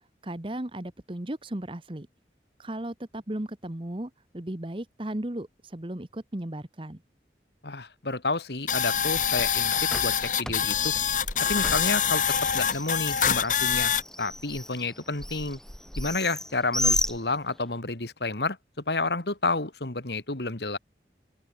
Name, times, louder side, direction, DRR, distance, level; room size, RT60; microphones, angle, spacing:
voice 1, 0.2-2.1 2.6-7.0, right 1 dB, 30° right, 1.2 m, -35 dB
voice 2, 7.6-9.7 10.0-10.9 11.5-12.2 12.5-13.9 14.2-15.6 16.0-18.6 18.9-20.8, left 3 dB, 70° left, 2.3 m, -30 dB
sound 1, 8.7-14.0, left 8 dB, 45° left, 1.7 m, -25 dB
Bird, 8.9-17.8, left 1 dB, 5° left, 4.7 m, -34 dB
open air
head